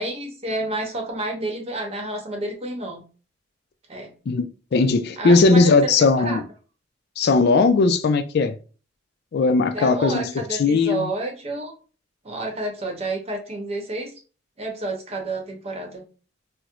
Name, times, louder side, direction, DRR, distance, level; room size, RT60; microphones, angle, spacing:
voice 1, 0.0-3.0 3.9-4.1 5.2-6.4 9.7-11.7 12.2-14.1 14.6-16.0, right 2 dB, 35° right, 0.8 m, -30 dB
voice 2, 4.3-6.4 7.2-8.6 9.3-11.1, left 3 dB, 60° left, 0.4 m, -18 dB
4.3 x 2.0 x 2.3 m
head